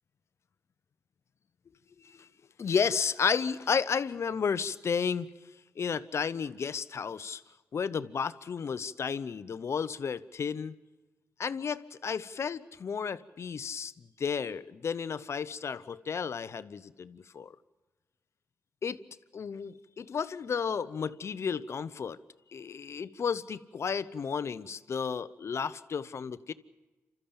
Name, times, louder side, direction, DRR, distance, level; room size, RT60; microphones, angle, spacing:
voice 1, 2.6-5.3 5.8-7.4 7.7-10.7 11.4-17.5 18.8-19.0 19.3-22.2 22.5-26.5, left 6 dB, 60° left, 14 dB, 0.8 m, -32 dB
28.5 x 13.5 x 8.7 m, 1.1 s
supercardioid pair, 45°, 5 cm